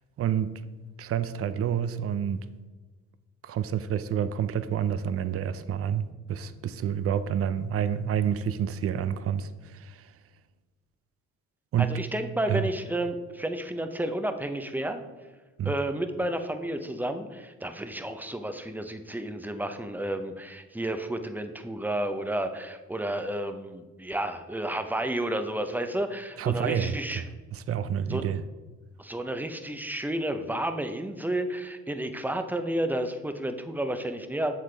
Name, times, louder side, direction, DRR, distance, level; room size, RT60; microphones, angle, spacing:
voice 1, 0.2-0.6 1.0-2.4 3.4-6.0 6.3-10.1 11.7-12.0 12.5-12.7 15.6-15.7 26.4-27.3 27.5-28.4, right 9 dB, 50° right, 0.5 m, -28 dB
voice 2, 11.8-15.0 15.6-27.2 28.1-28.2 29.0-34.5, right 1 dB, 5° right, 0.7 m, -31 dB
7.7 x 7.1 x 3.4 m
cardioid pair, 90°, 30 cm